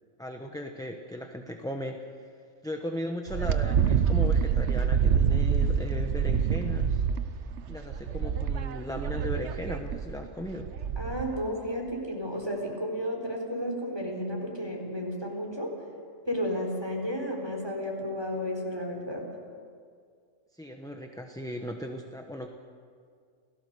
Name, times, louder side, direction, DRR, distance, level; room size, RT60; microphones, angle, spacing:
voice 1, 0.2-2.3 2.6-7.0 7.7-10.7 20.5-22.5, equal, 5° left, 3 dB, 1.0 m, -37 dB
Wind, 3.3-11.4, right 7 dB, 70° right, 1.1 m, -27 dB
voice 2, 11.0-15.7 16.3-19.3, equal, 20° right, 0 dB, 4.2 m, -32 dB
28.5 x 17.5 x 6.8 m, 2.1 s
omnidirectional pair, 1.3 m